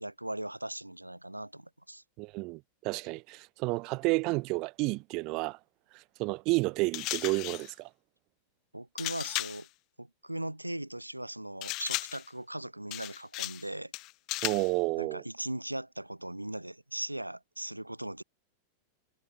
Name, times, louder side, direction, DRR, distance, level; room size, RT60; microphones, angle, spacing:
voice 1, 0.0-2.0 8.7-9.7 10.0-13.9 15.0-18.2, right 1 dB, 85° right, 5.0 m, -39 dB
voice 2, 2.2-5.6 5.9-7.9 14.4-15.2, right 25 dB, 40° right, 2.0 m, -31 dB
sound 1, 6.9-7.7 9.0-9.7 11.6-12.3 12.9-13.7 13.9-14.7, left 22 dB, 40° left, 6.9 m, -35 dB
figure-of-eight pair, 90°, 0 cm